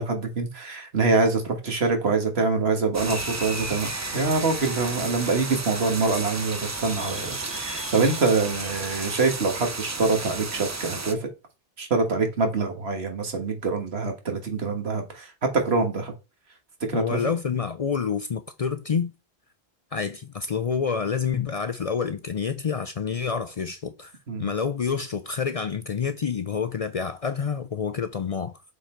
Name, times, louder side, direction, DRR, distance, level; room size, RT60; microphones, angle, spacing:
voice 1, 0.0-11.3 11.8-16.1 16.9-17.2 24.3-24.5, right 3 dB, 85° right, 1.8 m, -25 dB
sound 1, 2.9-11.1, right 3 dB, 25° right, 0.4 m, -33 dB
sound 2, 3.0-9.2, left 2 dB, 25° left, 1.2 m, -41 dB
voice 2, 16.9-19.1 19.9-24.1 24.4-28.6, left 6 dB, 50° left, 0.4 m, -28 dB
6.8 x 4.0 x 4.5 m
omnidirectional pair, 1.0 m